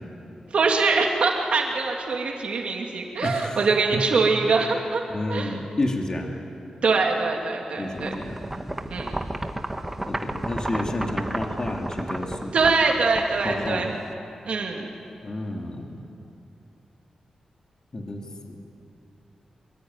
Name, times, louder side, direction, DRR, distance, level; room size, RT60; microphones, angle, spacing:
voice 1, 0.5-5.0 5.3-5.5 6.8-8.1 8.9-9.1 12.5-13.9 14.5-14.9, right 4 dB, 70° right, 1 dB, 2.7 m, -23 dB
voice 2, 3.2-4.4 5.1-6.3 7.8-8.9 10.1-12.5 13.4-13.9 15.2-16.0 17.9-18.6, left 1 dB, 35° left, 1 dB, 2.9 m, -31 dB
sound 1, 8.0-14.1, right 1 dB, 15° right, 1.5 m, -32 dB
24.0 x 23.5 x 9.8 m, 2.6 s
wide cardioid pair, 120°, 2 cm